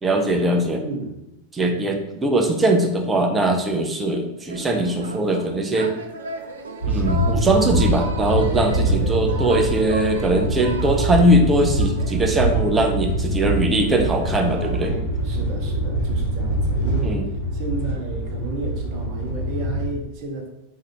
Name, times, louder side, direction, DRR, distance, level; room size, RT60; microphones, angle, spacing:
voice 1, 0.0-0.8 1.5-6.0 6.9-14.9 17.0-17.2, right 1 dB, 15° right, 4 dB, 0.5 m, -21 dB
voice 2, 0.8-1.2 8.8-9.2 14.9-20.5, right 2 dB, 40° right, 2 dB, 0.8 m, -33 dB
sound 1, 4.5-14.9, right 4 dB, 65° right, 0.5 m, -36 dB
sound 2, 6.8-19.8, right 1 dB, 60° left, 1.3 m, -24 dB
3.7 x 2.7 x 3.4 m, 0.88 s
figure-of-eight pair, 90°, 0 cm